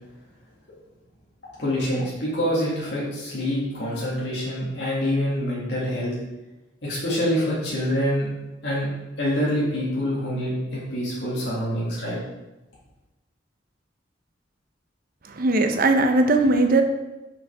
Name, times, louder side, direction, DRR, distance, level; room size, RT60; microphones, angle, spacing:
voice 1, 1.6-6.1 6.8-8.3 8.6-8.9 9.2-12.2, equal, 65° left, -7 dB, 2.0 m, -26 dB
voice 2, 15.3-16.8, right 2 dB, 50° right, 6 dB, 0.7 m, -19 dB
5.6 x 5.5 x 4.9 m, 1.1 s
head